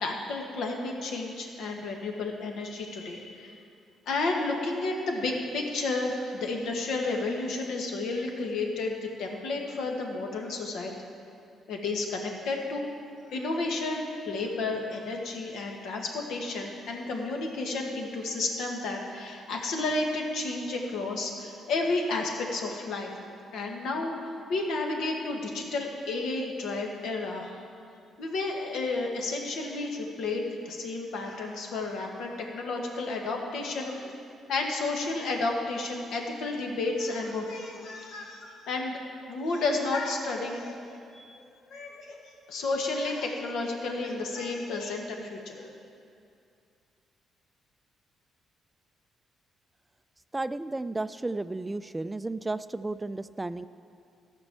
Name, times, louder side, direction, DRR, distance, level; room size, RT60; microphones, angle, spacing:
voice 1, 0.0-3.6 4.0-11.1 11.7-12.9 13.3-23.1 23.5-24.2 24.5-27.6 28.2-34.1 34.5-39.0 39.3-40.8 41.1-42.2 42.5-45.7, left 3 dB, 80° left, 1 dB, 1.6 m, -32 dB
voice 2, 50.3-53.7, right 2 dB, 15° right, 13 dB, 0.3 m, -33 dB
14.0 x 5.3 x 7.5 m, 2.5 s
cardioid pair, 90°, 0 cm